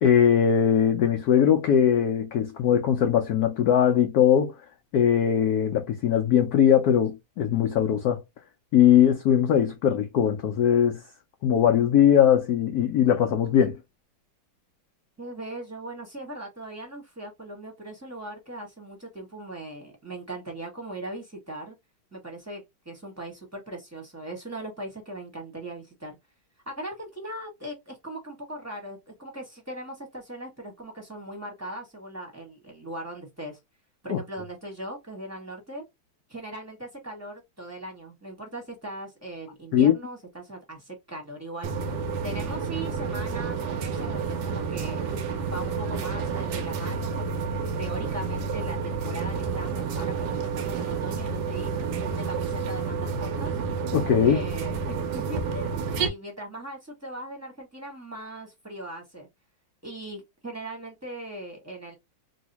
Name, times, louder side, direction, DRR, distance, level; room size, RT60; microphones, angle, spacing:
voice 1, 0.0-4.5 4.9-8.2 8.7-11.0 11.4-13.8 34.1-34.2 39.7-39.9 53.9-54.4, left 9 dB, 85° left, 0.8 m, -20 dB
voice 2, 15.2-21.7 22.1-26.2 26.7-33.6 34.0-35.8 36.3-41.9 42.2-45.1 45.4-47.5 47.8-51.7 52.1-53.5 54.2-59.3 59.8-62.0, right 1 dB, 10° right, 1.0 m, -39 dB
sound 1, 41.6-56.1, right 5 dB, 70° right, 1.0 m, -30 dB
3.0 x 2.7 x 2.8 m
omnidirectional pair, 2.3 m